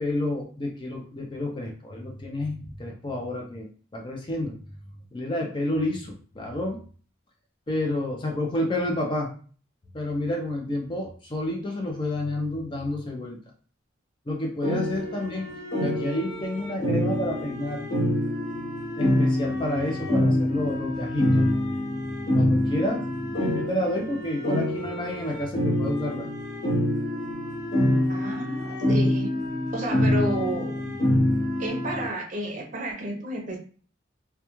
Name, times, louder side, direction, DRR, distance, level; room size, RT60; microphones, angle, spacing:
voice 1, 0.0-4.6 5.1-6.8 7.7-9.3 9.9-13.4 14.3-15.5 15.8-17.9 19.0-21.5 22.3-26.3, left 1 dB, 25° left, 0 dB, 0.4 m, -30 dB
sound 1, 14.6-32.1, left 1 dB, 85° left, 1.1 m, -26 dB
voice 2, 28.1-29.3 29.7-30.9 31.6-33.6, right 1 dB, 40° right, 1 dB, 0.6 m, -32 dB
2.3 x 2.2 x 2.9 m, 0.41 s
head